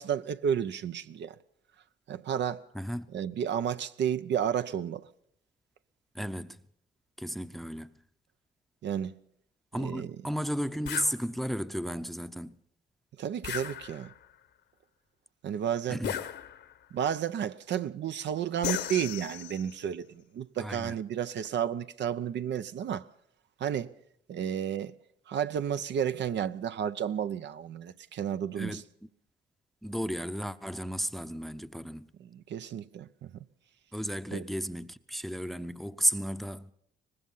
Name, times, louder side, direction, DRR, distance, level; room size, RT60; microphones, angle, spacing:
voice 1, 0.0-1.4 2.1-2.7 3.1-5.1 8.8-9.1 9.8-10.1 13.2-14.1 15.4-16.0 16.9-23.1 23.6-23.9 24.3-24.9 25.3-28.8 32.2-33.3 34.3-34.4, right 9 dB, 65° right, 0.7 m, -32 dB
voice 2, 2.7-3.1 6.1-6.6 7.2-8.0 9.7-12.6 15.9-16.2 20.6-21.0 28.6-28.8 29.8-32.1 33.9-36.7, equal, ahead, 0.7 m, -34 dB
sound 1, 10.9-11.2 13.4-14.3 16.0-16.8 18.6-19.7, left 10 dB, 60° left, 1.0 m, -36 dB
23.5 x 19.5 x 5.6 m
cardioid pair, 90°, 20 cm